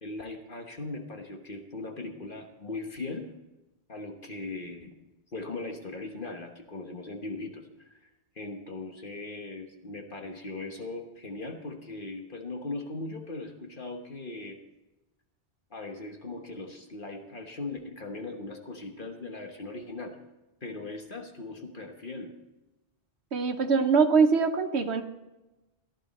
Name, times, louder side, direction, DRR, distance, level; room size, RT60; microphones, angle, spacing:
voice 1, 0.0-3.3 3.9-4.9 5.3-8.1 8.3-14.6 15.7-20.2 20.6-22.3, left 2 dB, 55° left, 3 dB, 1.4 m, -39 dB
voice 2, 23.3-25.0, right 5 dB, 90° right, 6 dB, 1.2 m, -23 dB
15.0 x 12.0 x 4.2 m, 1.0 s
omnidirectional pair, 1.1 m